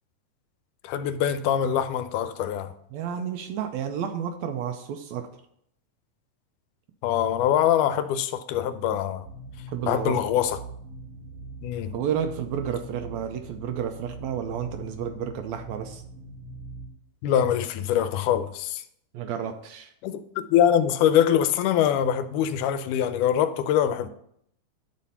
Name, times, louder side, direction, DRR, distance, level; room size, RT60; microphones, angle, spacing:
voice 1, 0.8-2.7 7.0-9.3 9.9-10.6 11.6-11.9 17.2-18.8 20.0-24.1, left 10 dB, 80° left, 2.0 m, -23 dB
voice 2, 2.9-5.3 9.7-10.2 11.9-16.0 19.1-19.9, right 8 dB, 80° right, 1.6 m, -31 dB
sound 1, 9.2-16.9, right 2 dB, 65° right, 1.9 m, -42 dB
10.5 x 4.2 x 5.5 m
omnidirectional pair, 3.8 m